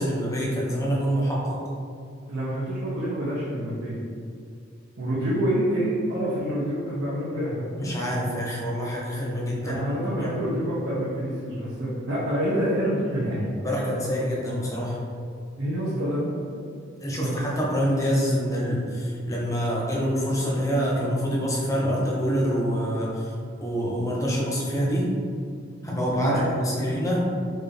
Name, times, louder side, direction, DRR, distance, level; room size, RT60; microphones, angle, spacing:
voice 1, 0.0-1.6 7.8-9.8 10.2-10.4 13.6-15.0 17.0-23.3 23.6-25.1 25.8-27.2, equal, 15° left, -4 dB, 0.7 m, -26 dB
voice 2, 2.3-4.0 5.0-7.7 9.6-13.6 15.6-16.3 17.1-17.4 26.2-26.4 26.7-26.9, equal, 70° right, -9 dB, 0.8 m, -27 dB
4.3 x 2.5 x 3.3 m, 2.4 s
head